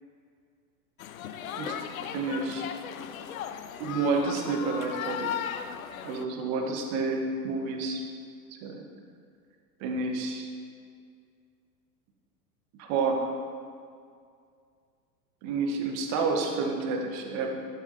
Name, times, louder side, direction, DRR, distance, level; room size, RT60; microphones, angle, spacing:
sound 1, 1.0-6.2, left 8 dB, 55° left, 0.6 m, -36 dB
voice 1, 2.1-2.7 3.8-5.3 6.0-8.0 8.5-8.8 9.8-10.5 12.8-13.3 15.4-17.6, right 4 dB, 30° right, 3 dB, 1.1 m, -29 dB
11.0 x 8.1 x 2.7 m, 2.2 s
figure-of-eight pair, 95°, 49 cm